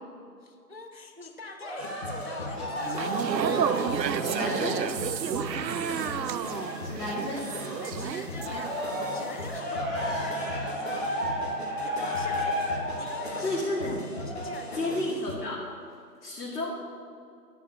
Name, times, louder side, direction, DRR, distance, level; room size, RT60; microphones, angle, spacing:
voice 1, 0.4-3.3 4.3-4.9 5.5-5.8 7.8-11.2 11.8-15.2, left 2 dB, 40° right, 5 dB, 0.4 m, -44 dB
Cheering, 1.6-7.9 8.3-14.9 15.5-15.6, equal, ahead, 0.6 m, -34 dB
sound 1, 1.8-15.4, left 2 dB, 40° left, 1.0 m, -40 dB
sound 2, 2.8-9.1 9.3-9.6, right 8 dB, 85° right, 0.6 m, -31 dB
voice 2, 4.2-4.8 6.8-7.5 13.4-14.0 14.7-15.6 16.2-16.8, left 1 dB, 80° left, -6 dB, 2.3 m, -31 dB
10.0 x 5.6 x 6.1 m, 2.4 s
figure-of-eight pair, 170°, 49 cm